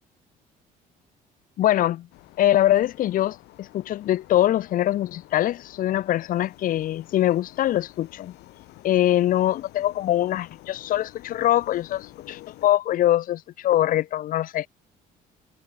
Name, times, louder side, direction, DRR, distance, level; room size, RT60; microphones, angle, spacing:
voice 1, 1.6-2.1 2.4-8.3 8.8-14.7, left 13 dB, 55° left, 0.6 m, -23 dB
sound 1, 2.1-12.7, left 18 dB, 85° left, 4.8 m, -49 dB
cardioid pair, 110°, 17 cm